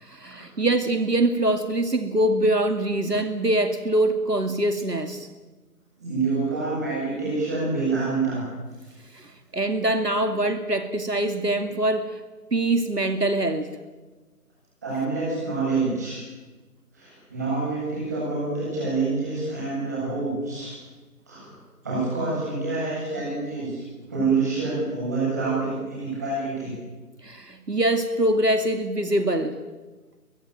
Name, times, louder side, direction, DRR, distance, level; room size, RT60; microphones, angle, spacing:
voice 1, 0.0-5.3 9.1-12.2 12.5-13.7 27.2-29.6, right 1 dB, 80° right, 8 dB, 2.6 m, -24 dB
voice 2, 6.0-8.4 14.8-16.2 16.9-20.7 21.3-21.5 21.8-23.8 24.1-26.7, right 3 dB, 10° right, -7 dB, 7.9 m, -27 dB
23.5 x 21.5 x 9.3 m, 1.3 s
figure-of-eight pair, 175°, 48 cm